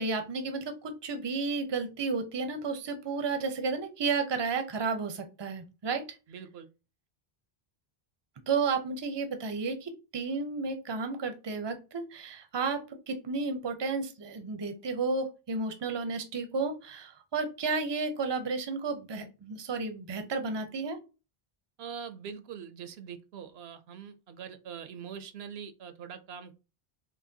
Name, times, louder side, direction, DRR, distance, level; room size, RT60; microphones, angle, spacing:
voice 1, 0.0-6.0 8.5-21.0, right 4 dB, 35° right, 0.5 m, -32 dB
voice 2, 6.3-6.7 21.8-26.5, right 7 dB, 80° right, 0.8 m, -43 dB
5.3 x 2.1 x 2.7 m
omnidirectional pair, 1.0 m